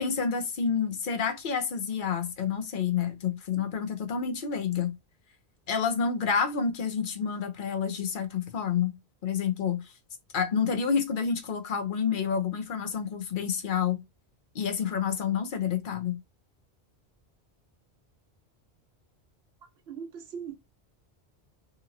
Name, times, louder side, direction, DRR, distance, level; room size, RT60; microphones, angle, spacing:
voice 1, 0.0-4.9 5.7-8.9 9.2-9.9 10.3-14.0 14.5-16.2, left 6 dB, 55° left, 0.7 m, -29 dB
voice 2, 19.6-20.6, right 7 dB, 70° right, 0.8 m, -40 dB
2.9 x 2.8 x 2.4 m
omnidirectional pair, 1.1 m